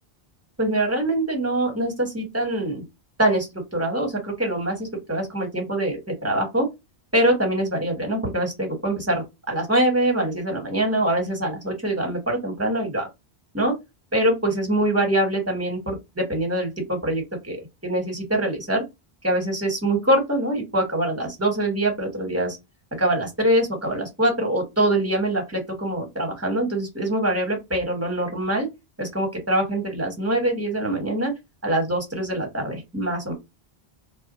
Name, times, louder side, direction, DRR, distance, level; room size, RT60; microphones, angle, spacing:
voice 1, 0.6-2.8 3.2-6.7 7.1-13.1 13.5-13.7 14.1-17.6 17.8-18.8 19.2-22.6 23.0-28.7 29.0-31.3 31.6-33.3, right 1 dB, 15° right, 3 dB, 1.1 m, -24 dB
2.4 x 2.1 x 3.9 m, 0.21 s
omnidirectional pair, 1.0 m